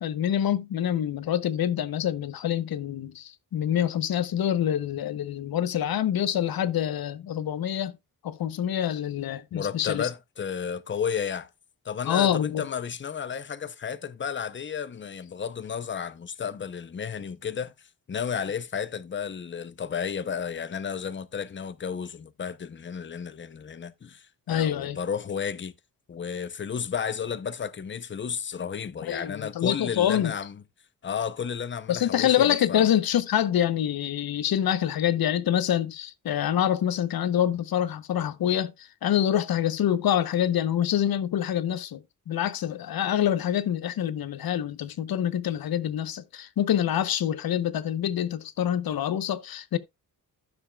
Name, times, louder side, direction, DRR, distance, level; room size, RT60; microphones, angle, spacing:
voice 1, 0.0-7.9 8.2-10.1 12.0-12.7 24.5-25.0 29.0-30.3 31.9-49.8, left 10 dB, 85° left, 0.8 m, -26 dB
voice 2, 9.5-11.5 11.8-17.7 18.1-25.7 26.1-30.6 31.0-32.9, left 7 dB, 35° left, 0.7 m, -32 dB
13.0 x 7.0 x 2.3 m
wide cardioid pair, 115°, 35 cm